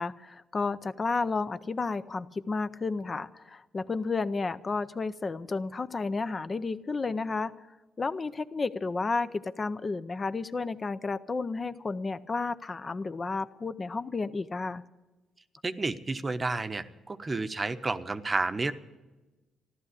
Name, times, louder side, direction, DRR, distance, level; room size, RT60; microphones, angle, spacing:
voice 1, 0.0-7.5 8.0-14.8, left 4 dB, 30° left, 12 dB, 0.5 m, -32 dB
voice 2, 15.6-18.7, right 3 dB, 25° right, 11 dB, 0.8 m, -31 dB
14.0 x 12.0 x 8.3 m, 1.1 s
cardioid pair, 90°, 0 cm